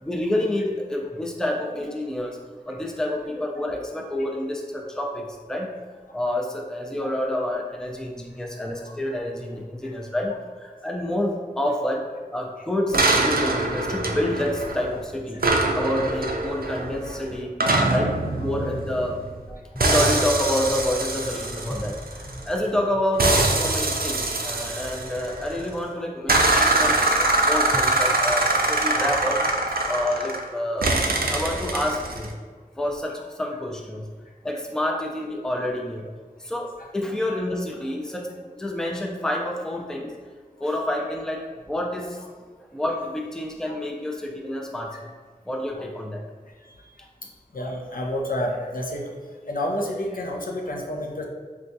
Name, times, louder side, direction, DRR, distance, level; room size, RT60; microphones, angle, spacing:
voice 1, 0.0-2.4 2.7-5.7 6.1-12.0 12.3-15.5 15.7-17.5 17.9-19.2 19.5-29.4 29.8-31.0 31.3-32.3 32.8-34.1 34.4-36.1 36.4-40.1 40.6-42.2 42.6-45.0 45.5-46.2, left 1 dB, 5° left, 0 dB, 0.4 m, -28 dB
sound 1, 12.9-15.0 15.4-19.4 19.8-22.6 23.2-25.6 26.3-30.5 30.8-32.3, right 2 dB, 75° right, 0.4 m, -23 dB
voice 2, 47.5-49.1 49.5-51.2, left 1 dB, 70° left, -1 dB, 0.5 m, -29 dB
4.4 x 2.3 x 2.6 m, 1.5 s
wide cardioid pair, 40°, 15 cm